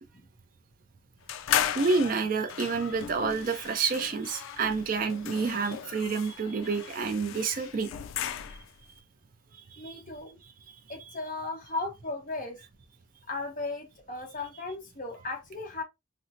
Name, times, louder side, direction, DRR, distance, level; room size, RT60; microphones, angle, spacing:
sound 1, 1.3-8.8, left 10 dB, 80° left, 0.3 m, -35 dB
voice 1, 1.7-7.9 8.5-8.6 9.8-10.0 10.7-10.8, right 4 dB, 45° right, 0.4 m, -29 dB
voice 2, 9.8-10.4 10.9-12.6 13.3-15.8, left 3 dB, 40° left, 0.8 m, -36 dB
4.2 x 2.0 x 2.5 m
head